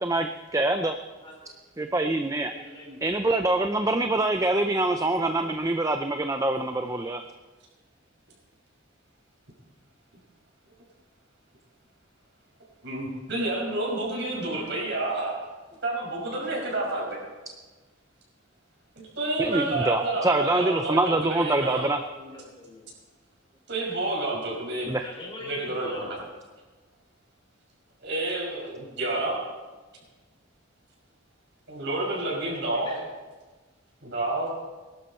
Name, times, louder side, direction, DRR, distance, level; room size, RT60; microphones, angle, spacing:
voice 1, 0.0-1.0 1.8-2.5 3.0-7.2 19.4-22.0 24.9-25.0, right 2 dB, 15° right, 7 dB, 0.4 m, -25 dB
voice 2, 1.2-1.6 2.5-3.1 21.8-22.9 25.0-26.1 29.0-29.4 32.7-33.0 34.3-34.4, left 1 dB, 25° left, -1 dB, 3.8 m, -43 dB
voice 3, 12.8-15.4 15.8-17.2 19.0-21.9 23.7-24.9 25.4-26.1 28.0-29.4 31.7-32.9 34.0-34.5, right 2 dB, 55° right, -3 dB, 5.7 m, -29 dB
21.0 x 12.0 x 4.4 m, 1.3 s
head